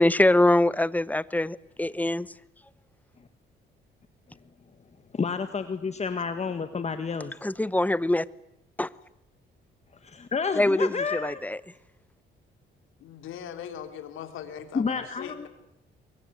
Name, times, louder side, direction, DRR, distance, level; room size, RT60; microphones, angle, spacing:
voice 1, 0.0-2.3 7.4-8.2 8.8-8.9 10.6-11.6, left 1 dB, 10° left, 0.9 m, -23 dB
voice 2, 5.1-7.3 10.0-11.4 14.7-15.5, left 5 dB, 35° left, 1.7 m, -30 dB
voice 3, 13.0-15.5, left 9 dB, 85° left, 3.3 m, -40 dB
23.5 x 22.0 x 9.5 m
cardioid pair, 90°, 20 cm